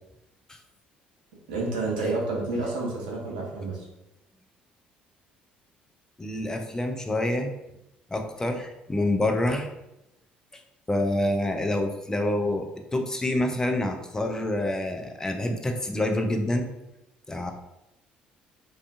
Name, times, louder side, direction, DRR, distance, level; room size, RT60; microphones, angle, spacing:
voice 1, 1.5-3.8, right 2 dB, 75° right, -3 dB, 0.7 m, -29 dB
voice 2, 6.2-7.5 8.1-9.7 10.5-10.6 10.9-16.7 17.3-17.5, left 1 dB, 15° left, 4 dB, 0.4 m, -27 dB
2.4 x 2.3 x 2.5 m, 0.88 s
figure-of-eight pair, 50°, 5 cm